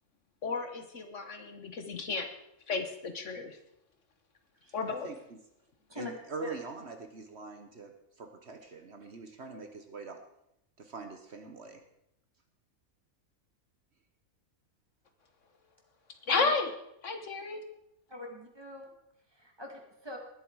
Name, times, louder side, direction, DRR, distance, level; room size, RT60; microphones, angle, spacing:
voice 1, 0.4-2.3 2.7-3.6 4.7-5.1 16.3-16.7 17.0-17.6, left 4 dB, 60° left, 7 dB, 1.4 m, -32 dB
voice 2, 4.8-5.2 6.0-7.9 8.2-10.2 10.8-11.8, right 4 dB, 50° right, 6 dB, 1.3 m, -44 dB
voice 3, 18.1-18.9 19.3-20.2, left 1 dB, 15° right, 2 dB, 2.1 m, -42 dB
20.0 x 7.6 x 4.7 m, 0.81 s
omnidirectional pair, 1.5 m